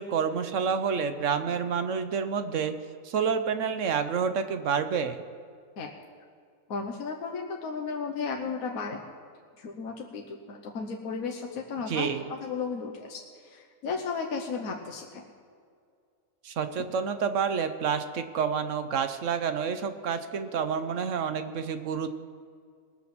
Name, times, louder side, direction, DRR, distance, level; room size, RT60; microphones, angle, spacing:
voice 1, 0.0-2.7 3.0-5.2 11.9-12.3 16.4-22.1, right 6 dB, 65° right, 9 dB, 1.1 m, -29 dB
voice 2, 6.7-9.0 9.6-15.2, left 5 dB, 80° left, 1 dB, 1.4 m, -34 dB
20.0 x 7.3 x 6.0 m, 2.2 s
omnidirectional pair, 1.5 m